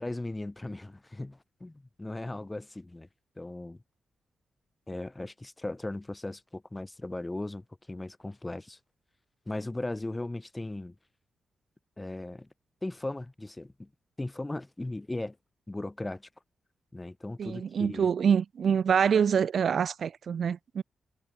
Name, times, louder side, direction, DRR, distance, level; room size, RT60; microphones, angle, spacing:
voice 1, 0.0-3.1 3.4-3.8 4.9-8.8 9.5-10.9 12.0-12.5 12.8-13.9 14.2-15.4 15.7-16.3 16.9-18.0, left 2 dB, 15° left, 6.8 m, -37 dB
voice 2, 17.4-20.8, right 7 dB, 60° right, 2.0 m, -26 dB
cardioid pair, 105°, 0 cm